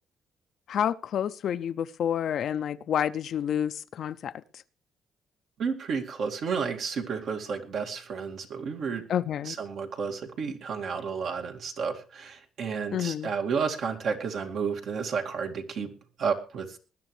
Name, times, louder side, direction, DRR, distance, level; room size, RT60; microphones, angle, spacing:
voice 1, 0.7-4.3 9.1-9.6 12.9-13.3, left 9 dB, 65° left, 14 dB, 0.6 m, -29 dB
voice 2, 5.6-9.0 9.4-15.9 16.2-16.8, right 6 dB, 70° right, 3 dB, 2.3 m, -31 dB
20.0 x 11.0 x 3.3 m, 0.35 s
cardioid pair, 90°, 0 cm